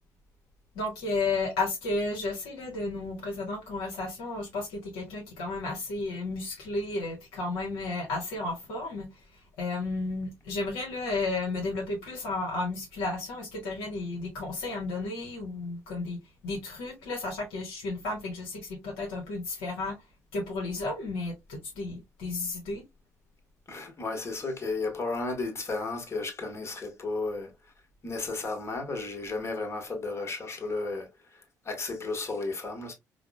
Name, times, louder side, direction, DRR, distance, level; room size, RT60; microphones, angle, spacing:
voice 1, 0.8-9.1 9.6-20.0 20.3-22.8, left 2 dB, 65° left, 0.8 m, -33 dB
voice 2, 23.7-27.5 28.0-31.1 31.3-32.9, left 3 dB, 35° left, 1.2 m, -33 dB
4.7 x 2.1 x 2.2 m
figure-of-eight pair, 45°, 8 cm